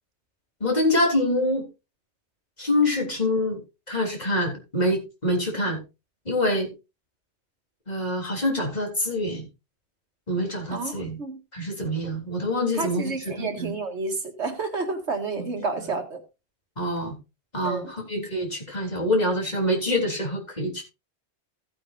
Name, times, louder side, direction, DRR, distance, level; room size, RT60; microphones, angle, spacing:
voice 1, 0.6-1.6 2.6-3.6 3.9-5.8 6.3-6.7 7.9-9.5 10.3-11.2 11.5-13.7 15.4-15.5 16.8-17.2 17.5-20.8, left 1 dB, 40° left, 3.7 m, -25 dB
voice 2, 12.7-16.2 17.7-17.9, right 3 dB, 80° right, 2.2 m, -30 dB
16.0 x 8.6 x 2.6 m
omnidirectional pair, 1.1 m